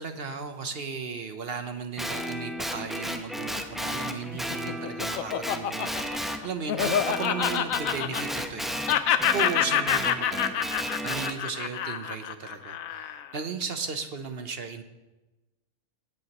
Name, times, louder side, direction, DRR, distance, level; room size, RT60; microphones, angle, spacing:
voice 1, 0.0-9.1 9.3-10.7 11.0-14.8, right 5 dB, 50° right, 7 dB, 0.9 m, -36 dB
Guitar, 2.0-6.4 6.8-11.3, equal, ahead, 0.5 m, -33 dB
Laughter, 4.3-8.6 8.9-13.3, left 9 dB, 75° left, 1.0 m, -27 dB
17.0 x 9.6 x 3.0 m, 1.1 s
omnidirectional pair, 1.5 m